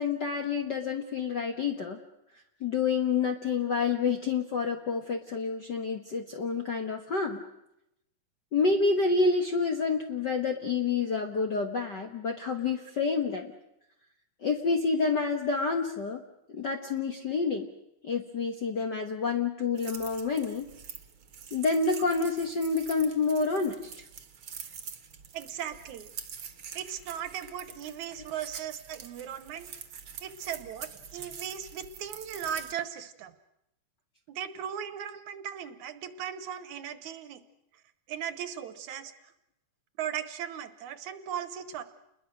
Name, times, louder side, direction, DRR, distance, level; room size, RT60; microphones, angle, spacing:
voice 1, 0.0-2.0 2.6-7.4 8.5-13.5 14.4-16.2 16.5-17.7 18.0-20.7 21.5-23.9, left 4 dB, 55° left, 4 dB, 1.2 m, -28 dB
sound 1, 19.8-32.7, right 7 dB, 50° right, 1.9 m, -45 dB
voice 2, 25.3-26.1 26.7-29.7 30.2-33.3 34.3-37.4 38.1-39.1 40.0-41.8, right 9 dB, 75° right, 11 dB, 2.4 m, -37 dB
29.5 x 21.5 x 6.3 m, 0.84 s
omnidirectional pair, 3.6 m